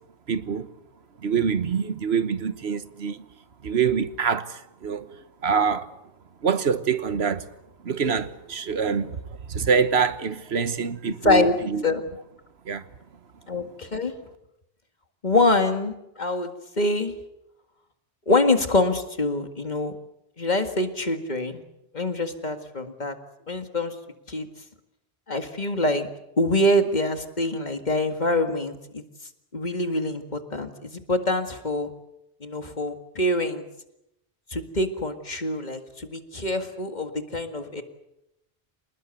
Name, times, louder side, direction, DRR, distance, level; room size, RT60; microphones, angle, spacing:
voice 1, 0.3-0.7 1.2-3.2 3.6-5.2 5.4-5.9 6.4-7.5 7.8-9.2 9.5-11.8 12.7-12.8, right 6 dB, 70° right, 1.3 m, -25 dB
voice 2, 11.2-11.6 11.8-12.0 13.5-14.1 15.2-17.1 18.3-19.9 20.4-21.6 21.9-23.2 23.5-24.0 24.3-24.5 25.3-26.1 26.4-29.0 29.5-31.9 32.4-33.6 34.5-37.8, left 2 dB, 40° left, 2.0 m, -25 dB
26.5 x 20.0 x 8.1 m
omnidirectional pair, 1.1 m